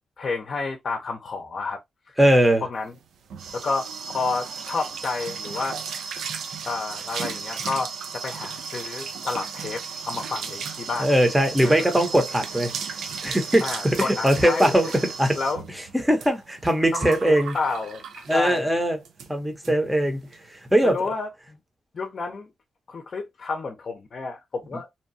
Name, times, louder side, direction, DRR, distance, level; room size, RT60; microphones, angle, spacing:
voice 1, 0.2-1.8 2.6-3.0 3.5-5.8 6.6-11.1 11.6-11.9 13.6-14.9 15.3-15.6 16.9-18.7 20.8-21.6 21.9-22.5 22.9-24.9, left 4 dB, 50° left, 0.6 m, -30 dB
voice 2, 2.2-2.6 11.0-12.7 13.2-15.4 16.0-17.6 18.3-19.0 19.3-20.2 20.5-21.0, right 1 dB, 5° right, 0.7 m, -20 dB
sound 1, 2.9-18.7 19.1-19.3 19.6-19.7 20.0-20.4, right 6 dB, 85° right, 0.4 m, -35 dB
2.7 x 2.2 x 2.6 m
cardioid pair, 85°, 0 cm